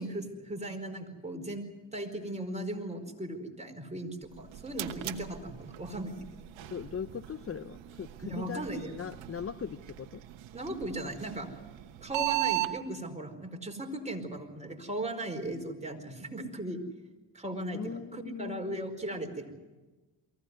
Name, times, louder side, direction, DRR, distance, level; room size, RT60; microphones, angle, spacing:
voice 1, 0.0-1.7 1.9-6.2 8.3-9.0 10.5-11.5 12.0-16.8 17.3-19.5, right 1 dB, 15° right, 3 dB, 4.8 m, -37 dB
sound 1, 4.2-12.7, right 19 dB, 85° right, 1.3 m, -38 dB
voice 2, 6.6-10.2 17.7-18.8, left 7 dB, 30° left, 13 dB, 0.8 m, -40 dB
23.5 x 16.5 x 9.6 m, 1.2 s
supercardioid pair, 60°, 44 cm